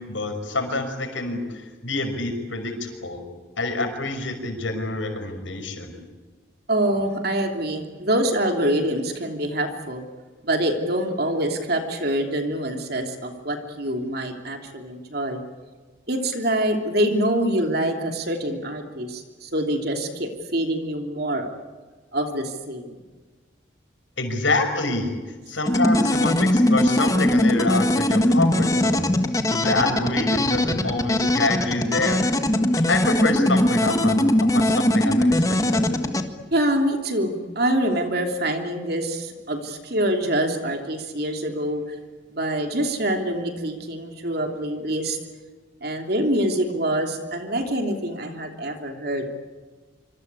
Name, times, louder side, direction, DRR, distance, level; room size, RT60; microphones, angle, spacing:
voice 1, 0.0-3.3 3.6-6.0 24.2-25.1 25.5-29.1 29.5-32.3 32.9-34.2 34.5-35.9, left 2 dB, 75° left, 6 dB, 6.0 m, -27 dB
voice 2, 6.7-10.0 10.4-15.4 16.1-21.5 22.1-22.9 36.5-42.0 42.3-45.2 45.8-49.4, right 1 dB, 50° right, 4 dB, 3.0 m, -25 dB
sound 1, 25.7-36.2, left 1 dB, 15° left, 1.6 m, -20 dB
26.5 x 26.0 x 8.3 m, 1.3 s
head